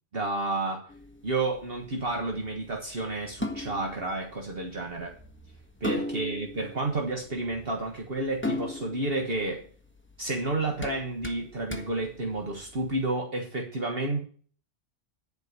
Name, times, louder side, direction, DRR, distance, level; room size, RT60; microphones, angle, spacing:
voice 1, 0.1-0.8 1.2-5.2 5.8-9.6 10.2-14.2, right 2 dB, 55° right, 1 dB, 1.6 m, -31 dB
sound 1, 0.9-13.0, left 2 dB, 10° left, 1.3 m, -39 dB
11.0 x 5.1 x 8.1 m, 0.43 s
omnidirectional pair, 1.2 m